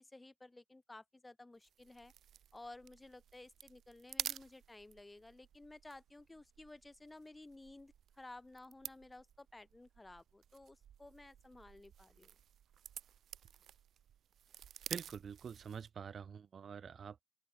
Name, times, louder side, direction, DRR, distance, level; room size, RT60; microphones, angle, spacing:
voice 1, 0.0-2.1 2.5-12.4, left 2 dB, 15° left, 4.7 m, -55 dB
sound 1, 1.6-16.0, right 9 dB, 65° right, 3.1 m, -51 dB
voice 2, 14.9-17.2, right 7 dB, 50° right, 3.1 m, -46 dB
open air
cardioid pair, 90°, 0 cm